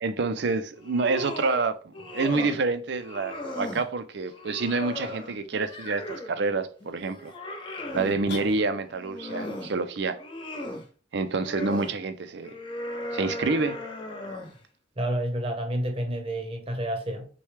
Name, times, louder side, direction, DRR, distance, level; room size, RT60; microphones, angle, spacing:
voice 1, 0.0-7.3 7.9-10.2 11.1-12.6 13.1-13.8, right 3 dB, 60° right, 0.5 m, -28 dB
sound 1, 0.7-1.6 1.9-2.6 3.0-3.9 4.3-6.4 6.8-8.2 8.9-9.7 10.1-10.9 11.3-11.9 12.4-14.6, left 2 dB, 25° left, 0.8 m, -37 dB
sound 2, 8.3-9.2, left 2 dB, 55° left, 1.1 m, -38 dB
voice 2, 15.0-17.3, right 1 dB, 30° right, 0.9 m, -29 dB
6.3 x 2.3 x 3.3 m
head